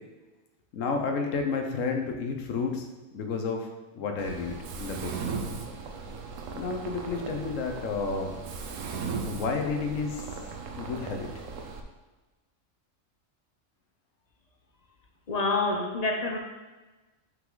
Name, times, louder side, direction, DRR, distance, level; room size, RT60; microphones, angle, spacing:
voice 1, 0.7-2.9 3.1-3.7 3.9-5.1 6.5-8.4 9.2-10.2 10.8-11.3, left 4 dB, 80° left, 4 dB, 1.2 m, -31 dB
Mechanisms, 4.2-11.8, right 4 dB, 75° right, 1.1 m, -37 dB
voice 2, 15.3-16.4, left 3 dB, 40° left, 2 dB, 0.7 m, -27 dB
5.8 x 5.5 x 3.8 m, 1.2 s
omnidirectional pair, 1.3 m